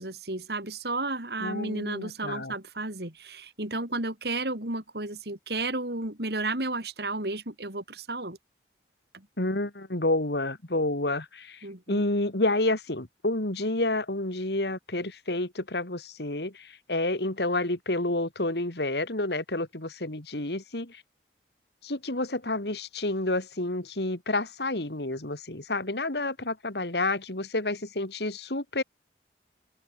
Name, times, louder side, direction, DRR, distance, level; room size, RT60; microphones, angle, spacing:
voice 1, 0.0-8.4 11.6-12.0, right 2 dB, 65° right, 3.8 m, -33 dB
voice 2, 1.4-2.6 9.4-21.0 21.8-28.8, left 2 dB, 70° left, 2.7 m, -29 dB
open air
head